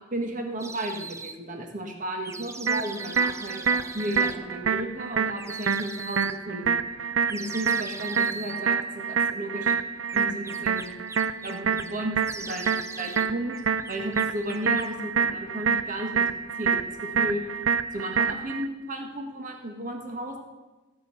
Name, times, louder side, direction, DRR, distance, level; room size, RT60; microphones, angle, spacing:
voice 1, 0.1-6.8 7.3-9.7 10.1-10.9 11.4-13.6 13.9-17.4 17.9-20.4, right 1 dB, 40° right, 3 dB, 1.5 m, -34 dB
sound 1, 0.6-1.4 2.2-4.4 5.4-6.4 7.3-8.6 10.1-11.9 12.2-13.3 13.5-15.0, right 3 dB, 15° right, 0.6 m, -41 dB
sound 2, 2.7-18.7, right 6 dB, 80° right, 0.6 m, -27 dB
15.5 x 6.3 x 8.4 m, 1.2 s
head